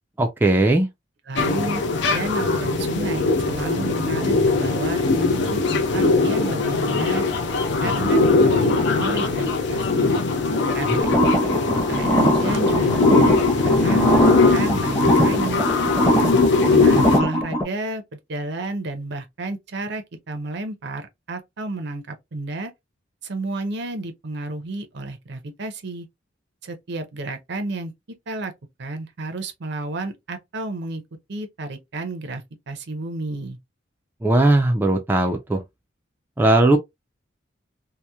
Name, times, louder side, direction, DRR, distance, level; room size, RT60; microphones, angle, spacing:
voice 1, 0.2-0.9 10.9-11.0 34.2-35.6 36.4-36.8, right 2 dB, 10° right, 0.3 m, -18 dB
voice 2, 1.3-1.8 2.1-7.3 7.8-8.7 9.0-10.2 10.7-11.2 11.9-15.6 16.7-22.7 23.2-26.1 26.6-28.5 28.8-31.0 31.3-33.6, right 2 dB, 65° right, 0.6 m, -31 dB
sound 1, 1.4-17.2, left 3 dB, 65° left, 0.5 m, -20 dB
sound 2, 11.0-17.6, equal, 15° left, 0.7 m, -21 dB
2.8 x 2.0 x 2.2 m
head